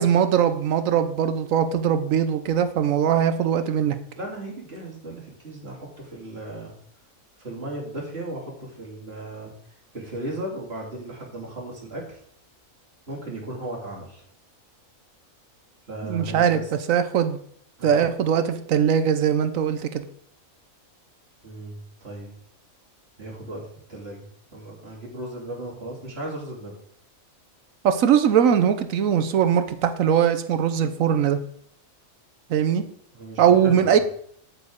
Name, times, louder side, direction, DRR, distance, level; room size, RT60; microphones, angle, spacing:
voice 1, 0.0-4.0 16.0-16.6 16.9-17.4 17.8-20.0 27.8-31.4 32.5-32.8 33.4-34.0, right 8 dB, 75° right, 9 dB, 1.2 m, -21 dB
voice 2, 4.2-6.7 7.4-9.5 9.9-12.0 13.1-14.2 15.9-16.7 17.8-18.1 21.4-22.3 23.2-23.6 23.9-24.3 24.5-26.7 33.1-34.0, right 1 dB, 50° right, -3 dB, 2.8 m, -36 dB
8.4 x 8.2 x 3.7 m, 0.63 s
omnidirectional pair, 1.4 m